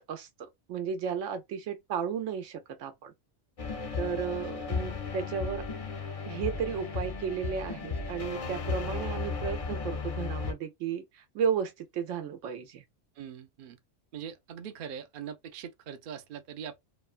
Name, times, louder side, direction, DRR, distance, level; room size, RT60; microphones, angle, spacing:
voice 1, 0.0-3.1 4.0-5.6 6.3-12.8, right 7 dB, 80° right, 1.0 m, -34 dB
sound 1, 3.6-10.5, left 4 dB, 45° left, 0.4 m, -35 dB
voice 2, 13.2-13.8 14.1-16.8, right 8 dB, 55° right, 0.6 m, -42 dB
3.0 x 2.1 x 2.4 m
omnidirectional pair, 1.3 m